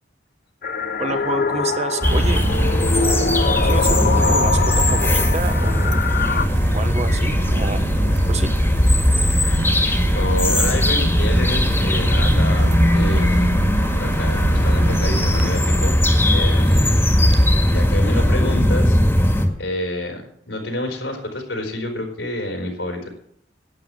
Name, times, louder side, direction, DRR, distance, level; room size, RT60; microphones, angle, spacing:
sound 1, 0.6-6.5, left 4 dB, 55° left, 0.8 m, -24 dB
voice 1, 1.0-2.4 2.9-3.3 3.6-6.0 6.7-8.5, right 3 dB, 40° right, 8 dB, 1.2 m, -29 dB
sound 2, 2.0-19.5, left 1 dB, 15° left, 2.0 m, -18 dB
sound 3, 2.0-15.6, right 4 dB, 90° right, 0.5 m, -28 dB
voice 2, 9.7-13.7 14.0-16.0 16.3-23.1, left 1 dB, 85° left, 2 dB, 4.2 m, -29 dB
11.5 x 9.3 x 7.6 m, 0.70 s
head